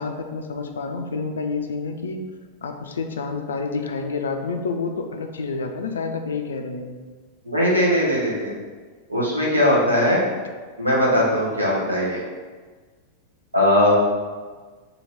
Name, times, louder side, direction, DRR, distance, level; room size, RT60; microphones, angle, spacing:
voice 1, 0.0-2.2 2.6-7.0, left 4 dB, 70° left, 5 dB, 0.3 m, -29 dB
voice 2, 7.4-8.6 9.1-10.2 10.8-12.2 13.5-14.0, left 1 dB, 80° right, -5 dB, 1.0 m, -19 dB
2.9 x 2.8 x 4.0 m, 1.4 s
figure-of-eight pair, 90°, 0 cm